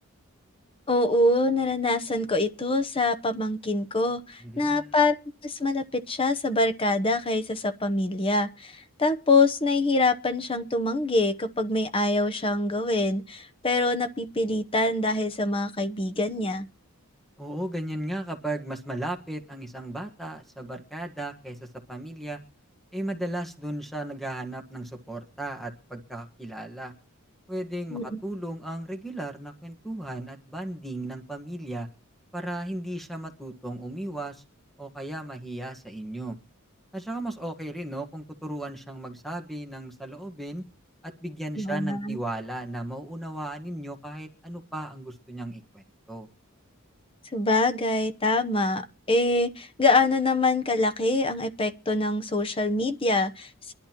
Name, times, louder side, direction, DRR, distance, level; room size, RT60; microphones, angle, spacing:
voice 1, 0.9-5.2 5.4-16.7 27.9-28.2 41.6-42.2 47.3-53.7, left 2 dB, 25° left, 0.8 m, -25 dB
voice 2, 4.4-5.0 17.4-22.4 22.9-26.9 27.5-31.9 32.3-34.4 34.8-36.4 36.9-40.6 41.0-46.3, right 1 dB, ahead, 1.5 m, -35 dB
24.0 x 11.5 x 3.0 m
head